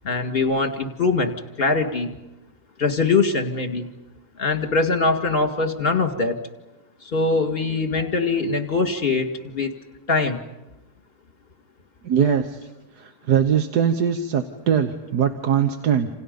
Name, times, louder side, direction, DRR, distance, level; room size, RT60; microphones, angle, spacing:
voice 1, 0.0-2.2 2.8-3.9 4.4-6.4 7.0-9.7 10.1-10.4, left 3 dB, 35° left, 6 dB, 2.2 m, -22 dB
voice 2, 12.0-12.6 13.0-16.1, right 8 dB, 80° right, 7 dB, 1.7 m, -21 dB
28.5 x 27.5 x 5.4 m, 1.0 s
omnidirectional pair, 1.7 m